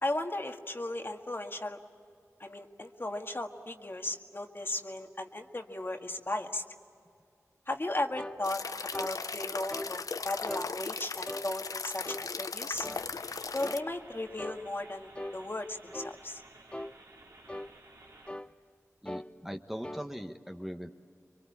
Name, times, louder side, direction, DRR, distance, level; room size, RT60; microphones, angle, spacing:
voice 1, 0.0-1.8 2.4-6.6 7.7-12.9 13.5-16.4, left 2 dB, 40° left, 4 dB, 1.8 m, -36 dB
sound 1, 8.2-8.4 8.9-9.2 9.7-9.9 10.5-10.7 11.3-11.5 12.0-12.3 12.8-13.1 13.6-13.8 14.4-14.6 15.2-15.4 15.9-16.2 16.7-17.0 17.5-17.7 18.3-18.5 19.1-19.3 19.8-20.1, left 1 dB, 20° left, 0.8 m, -40 dB
sound 2, 8.4-13.8, left 4 dB, 85° left, 0.6 m, -38 dB
sound 3, 12.7-18.3, right 2 dB, 75° right, 3.2 m, -55 dB
voice 2, 19.0-20.9, equal, 5° right, 5 dB, 1.2 m, -40 dB
27.0 x 23.5 x 8.6 m, 2.4 s
cardioid pair, 40°, 6 cm